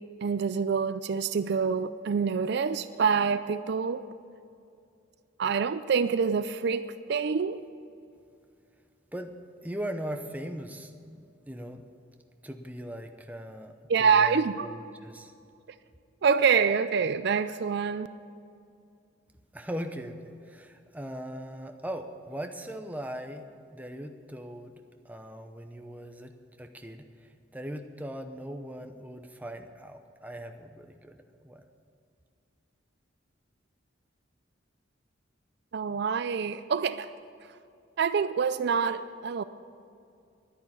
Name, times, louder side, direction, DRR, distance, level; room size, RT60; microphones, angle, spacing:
voice 1, 0.2-4.0 5.4-7.6 13.9-14.7 16.2-18.1 35.7-37.1 38.0-39.4, right 6 dB, 60° right, 13 dB, 0.4 m, -26 dB
voice 2, 9.6-11.8 12.4-15.3 19.5-31.6, equal, 10° right, 6 dB, 0.8 m, -40 dB
11.5 x 10.0 x 8.6 m, 2.4 s
head